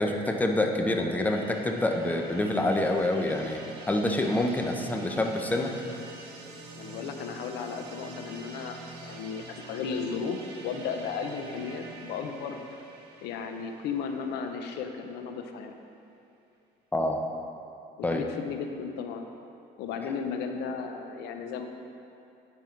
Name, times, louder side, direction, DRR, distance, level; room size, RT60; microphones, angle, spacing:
voice 1, 0.0-3.6 3.9-5.7 16.9-17.2 18.0-18.2, left 1 dB, 10° left, 3 dB, 0.7 m, -26 dB
sound 1, 1.3-15.0, right 3 dB, 80° right, 1.1 m, -46 dB
voice 2, 6.7-12.8 13.2-15.8 18.0-19.2 19.8-21.7, left 5 dB, 80° left, 6 dB, 0.6 m, -35 dB
9.9 x 5.4 x 4.5 m, 2.7 s
cardioid pair, 110°, 17 cm